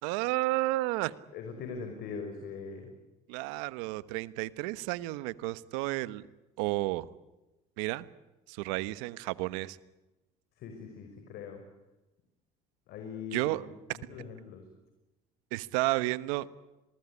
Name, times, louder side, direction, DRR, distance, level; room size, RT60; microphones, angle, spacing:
voice 1, 0.0-1.1 3.3-6.3 6.6-7.1 7.8-8.1 8.5-9.8 13.3-13.6 15.5-16.5, right 19 dB, 85° right, 16 dB, 1.2 m, -31 dB
voice 2, 1.3-2.9 10.6-11.6 12.9-14.6, left 5 dB, 65° left, 5 dB, 5.5 m, -41 dB
27.0 x 20.5 x 9.9 m, 1.0 s
supercardioid pair, 85°, 17 cm